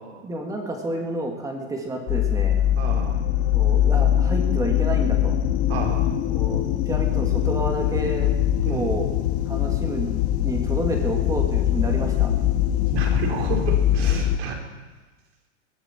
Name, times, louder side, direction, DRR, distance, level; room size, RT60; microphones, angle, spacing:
voice 1, 0.2-2.6 3.5-5.3 6.3-8.3 8.7-9.1 9.5-12.3, right 1 dB, 10° right, 2 dB, 2.3 m, -30 dB
sound 1, 2.1-14.4, left 11 dB, 25° left, 0.5 m, -22 dB
voice 2, 2.8-3.2 5.7-6.1 8.6-8.9 12.9-14.5, right 5 dB, 55° right, 0 dB, 4.7 m, -31 dB
21.5 x 14.0 x 4.5 m, 1.3 s
supercardioid pair, 150°, 37 cm